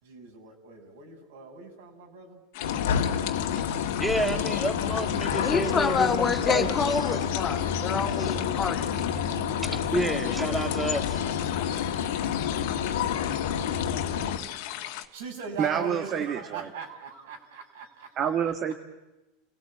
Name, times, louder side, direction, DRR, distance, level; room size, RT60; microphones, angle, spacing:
voice 1, 0.0-2.4 9.6-10.1 15.1-18.1, right 6 dB, 75° right, 2 dB, 6.3 m, -40 dB
sound 1, 2.5-15.1, left 13 dB, 65° left, 1.9 m, -38 dB
sound 2, 2.6-14.4, left 8 dB, 90° left, 2.0 m, -29 dB
voice 2, 4.0-6.7 9.9-11.2, right 1 dB, 5° right, 4 dB, 2.1 m, -29 dB
voice 3, 5.4-8.9, left 6 dB, 25° left, 4 dB, 2.6 m, -27 dB
voice 4, 15.6-16.7 18.2-18.7, right 8 dB, 40° right, 4 dB, 1.9 m, -28 dB
30.0 x 17.5 x 8.6 m, 1.0 s
supercardioid pair, 120°, 0 cm